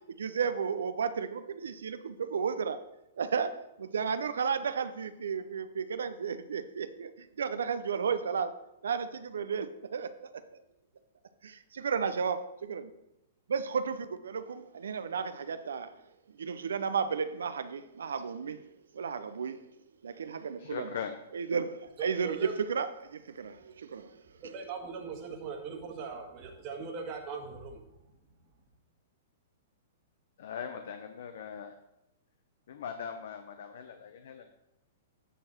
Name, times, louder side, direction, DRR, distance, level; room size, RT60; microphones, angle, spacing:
voice 1, 0.2-2.8 3.2-8.5 8.8-10.3 11.4-12.9 13.5-16.0 16.4-18.7 18.9-19.7 20.0-20.9 21.3-24.2, right 6 dB, 75° right, 0.6 m, -33 dB
voice 2, 20.6-21.2 30.4-31.8 32.7-34.5, left 7 dB, 65° left, 0.7 m, -40 dB
voice 3, 22.0-22.5 24.4-27.8, right 5 dB, 40° right, 1.6 m, -40 dB
9.1 x 6.5 x 4.4 m
hypercardioid pair, 110°, 0 cm